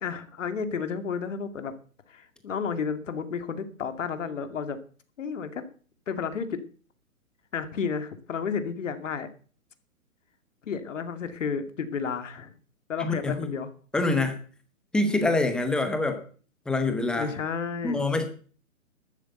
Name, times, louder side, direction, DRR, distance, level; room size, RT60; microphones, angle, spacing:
voice 1, 0.0-1.7 2.1-4.8 5.2-5.7 6.1-6.6 7.5-9.3 10.6-12.5 12.9-13.7 17.2-18.0, left 6 dB, 60° left, 9 dB, 2.3 m, -32 dB
voice 2, 13.0-13.5 13.9-14.4 14.9-16.2 16.7-17.3 17.8-18.2, left 2 dB, ahead, 8 dB, 0.8 m, -25 dB
12.5 x 8.0 x 8.1 m, 0.42 s
hypercardioid pair, 145°, 43 cm